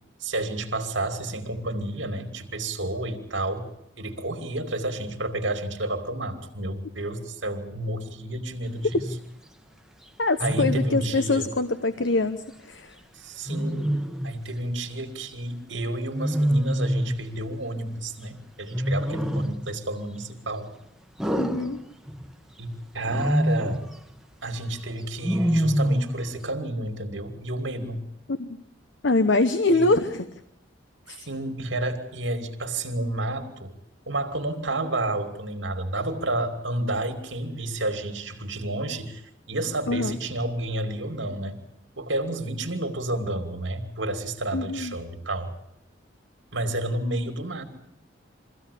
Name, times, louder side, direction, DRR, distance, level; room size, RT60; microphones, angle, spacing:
voice 1, 0.2-3.7 4.0-9.0 10.4-11.5 13.1-20.7 22.6-23.9 24.4-28.1 29.7-29.9 31.3-33.7 34.1-39.2 39.5-41.6 42.0-45.5 46.5-47.6, right 1 dB, 75° right, 6 dB, 2.7 m, -30 dB
Wild animals, 8.8-9.2 10.4-11.1 13.5-14.4 16.1-17.2 18.7-19.7 21.2-22.3 23.0-23.9 25.2-26.2, equal, ahead, 1.1 m, -26 dB
voice 2, 10.2-12.9 21.4-21.8 28.3-28.6 29.0-30.2 31.1-31.3 39.9-40.2 44.5-45.0, left 2 dB, 70° left, 10 dB, 0.9 m, -24 dB
23.5 x 16.0 x 8.5 m, 0.78 s
head